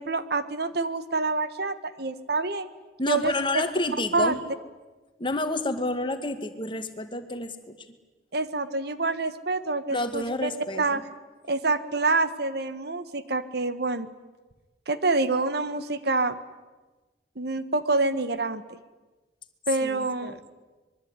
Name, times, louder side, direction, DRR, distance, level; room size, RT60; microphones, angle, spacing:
voice 1, 0.0-2.7 3.0-3.6 4.1-4.4 8.3-10.5 10.8-11.0 11.5-14.1 14.9-16.4 17.4-18.6 19.7-20.4, right 3 dB, 60° right, 12 dB, 1.5 m, -27 dB
voice 2, 3.0-4.4 5.2-7.7 9.9-11.0 19.8-20.5, left 2 dB, 30° left, 9 dB, 2.1 m, -29 dB
25.0 x 22.5 x 9.8 m, 1.2 s
head